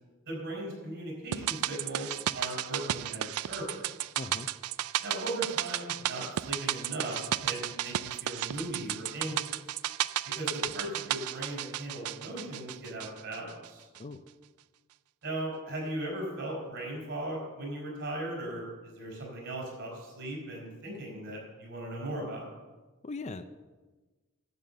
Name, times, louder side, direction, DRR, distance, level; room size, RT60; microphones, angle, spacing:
voice 1, 0.3-3.9 5.0-9.6 10.3-13.9 15.2-22.5, right 1 dB, 55° right, -1 dB, 4.6 m, -38 dB
sound 1, 1.3-13.7 13.9-14.0, right 13 dB, 85° right, 0.3 m, -34 dB
voice 2, 4.2-4.5 14.0-14.2 23.0-23.4, left 3 dB, 30° left, 10 dB, 0.4 m, -39 dB
10.5 x 8.2 x 6.7 m, 1.3 s
head